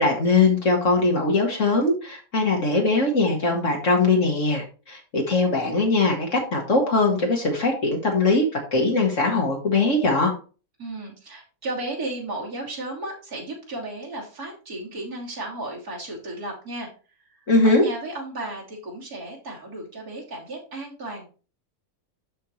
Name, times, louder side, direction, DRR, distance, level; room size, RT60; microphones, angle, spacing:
voice 1, 0.0-10.3 17.5-17.8, left 3 dB, 55° left, 0 dB, 2.0 m, -21 dB
voice 2, 10.8-16.9 17.2-21.3, right 2 dB, 80° right, -4 dB, 3.4 m, -34 dB
12.0 x 4.5 x 3.2 m, 0.35 s
omnidirectional pair, 1.5 m